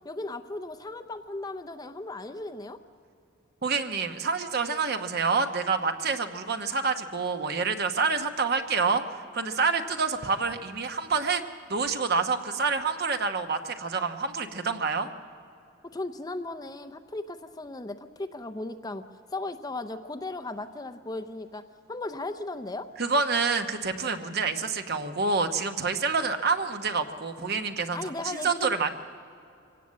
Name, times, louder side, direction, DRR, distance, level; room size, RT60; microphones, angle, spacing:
voice 1, 0.0-2.8 15.8-19.0 19.3-21.6 21.9-22.9 27.9-28.8, left 2 dB, 20° left, 9 dB, 0.6 m, -36 dB
voice 2, 3.6-11.4 11.7-15.1 23.0-28.9, right 4 dB, 50° right, 7 dB, 1.0 m, -27 dB
25.0 x 17.0 x 7.5 m, 2.6 s
head